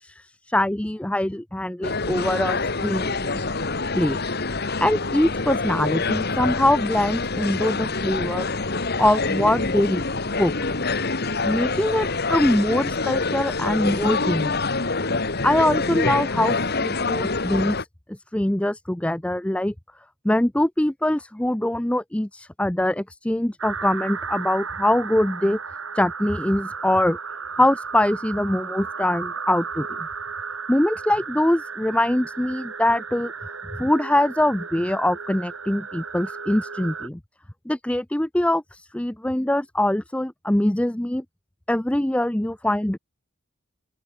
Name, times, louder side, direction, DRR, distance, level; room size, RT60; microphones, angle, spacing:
voice 1, 0.0-3.3 4.0-4.2 4.8-8.5 9.0-10.0 10.4-10.5 11.4-14.6 15.4-19.7 20.2-25.6 26.0-27.2 27.6-29.9 30.7-33.3 33.8-37.2 37.7-41.2 41.7-43.0, left 1 dB, 5° left, 0.5 m, -23 dB
sound 1, 1.8-17.8, left 3 dB, 50° left, 2.4 m, -26 dB
sound 2, 23.6-37.1, right 5 dB, 80° right, 7.8 m, -34 dB
open air
head